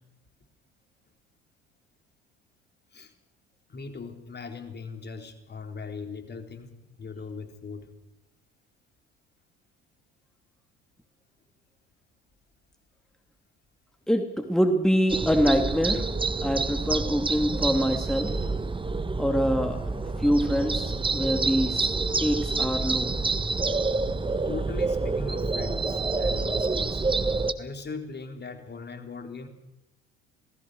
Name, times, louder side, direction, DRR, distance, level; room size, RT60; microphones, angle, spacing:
voice 1, 3.7-7.9 24.5-27.0 27.6-29.5, left 4 dB, 30° left, 6 dB, 3.9 m, -39 dB
voice 2, 14.1-16.1 16.4-18.3 19.2-19.9 20.2-21.9 22.2-23.2, equal, ahead, 5 dB, 2.8 m, -25 dB
sound 1, 15.1-27.5, right 3 dB, 15° right, 1.6 m, -28 dB
27.5 x 19.0 x 6.5 m, 0.94 s
hypercardioid pair, 60°, 32 cm